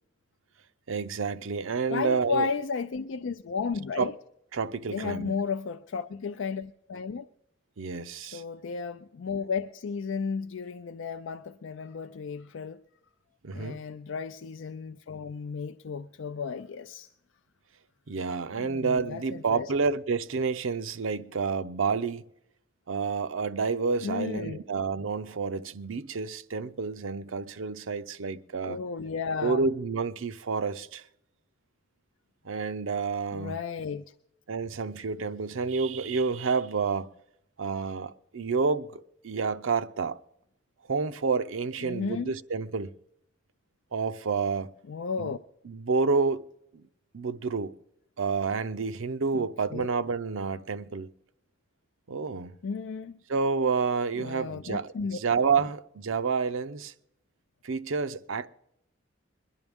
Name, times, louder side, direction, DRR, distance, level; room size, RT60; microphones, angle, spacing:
voice 1, 0.9-2.5 4.0-4.1 4.5-5.4 7.8-8.4 13.4-13.8 18.1-22.2 22.9-28.8 29.4-31.1 32.4-33.5 34.5-37.1 37.6-40.2 40.9-42.9 43.9-44.7 45.2-45.3 45.7-46.5 46.7-46.9 47.1-47.8 48.2-51.1 52.1-52.6 53.3-56.9 57.6-58.5, right 4 dB, 90° right, 0.6 m, -29 dB
voice 2, 1.9-4.1 4.9-7.3 8.2-12.8 13.5-17.1 18.6-19.7 24.0-24.6 28.6-29.7 33.3-34.0 41.8-42.3 44.9-45.4 49.3-49.9 52.6-53.2 54.2-55.2 55.6-55.7, left 5 dB, 75° left, 0.4 m, -34 dB
22.0 x 11.0 x 3.5 m
head